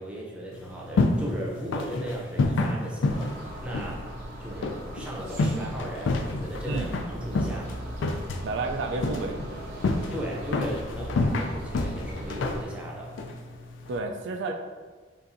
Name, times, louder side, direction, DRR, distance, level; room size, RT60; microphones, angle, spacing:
voice 1, 0.0-4.1 4.4-7.7 10.1-13.2, equal, 5° right, -4 dB, 0.6 m, -37 dB
sound 1, 0.5-14.0, left 2 dB, 75° left, 0.4 m, -30 dB
sound 2, 3.1-12.6, right 1 dB, 50° right, 0.7 m, -39 dB
voice 2, 8.4-9.4 13.9-14.5, right 3 dB, 65° right, 3 dB, 0.3 m, -30 dB
5.4 x 2.5 x 2.6 m, 1.4 s
head